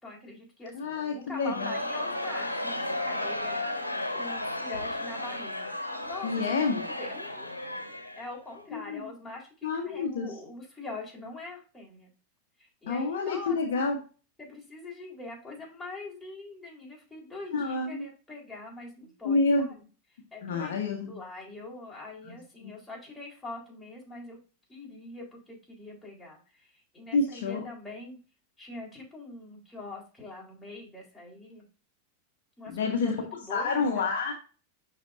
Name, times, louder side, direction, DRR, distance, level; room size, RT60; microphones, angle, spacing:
voice 1, 0.0-7.5 8.2-12.1 12.6-13.6 14.4-19.7 20.3-24.4 24.7-28.2 28.6-31.6 32.6-34.1, left 2 dB, 5° left, -4 dB, 4.1 m, -44 dB
voice 2, 0.7-1.7 6.2-6.8 8.7-9.0 9.6-10.3 12.9-14.0 17.5-18.0 19.2-19.7 20.4-21.1 22.3-22.7 27.1-27.6 32.7-33.2 33.5-34.3, left 3 dB, 60° left, 2 dB, 1.3 m, -28 dB
Crowd, 1.3-8.6, left 1 dB, 85° left, 1.5 m, -34 dB
11.5 x 4.1 x 2.6 m, 0.35 s
figure-of-eight pair, 90°, 0 cm